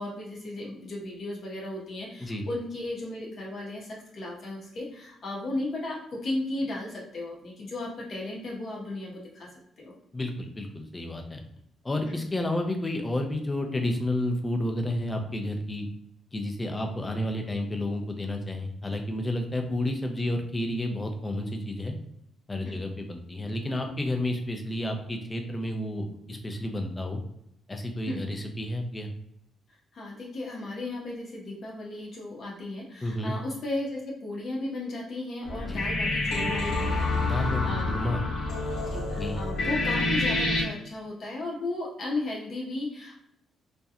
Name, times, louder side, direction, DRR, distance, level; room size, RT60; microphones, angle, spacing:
voice 1, 0.0-9.5 9.8-9.9 12.0-12.2 22.6-22.8 28.1-28.2 29.9-38.0 38.9-43.1, left 2 dB, 55° left, -3 dB, 0.8 m, -35 dB
voice 2, 10.1-11.4 11.8-15.9 16.3-21.9 22.5-27.2 27.7-29.1 33.0-33.3 35.7-35.8 37.2-38.2 39.2-39.4, left 1 dB, 20° left, 4 dB, 0.5 m, -31 dB
sound 1, 35.4-40.6, left 2 dB, 80° left, 1.0 m, -28 dB
2.8 x 2.1 x 2.4 m, 0.78 s
cardioid pair, 90°, 0 cm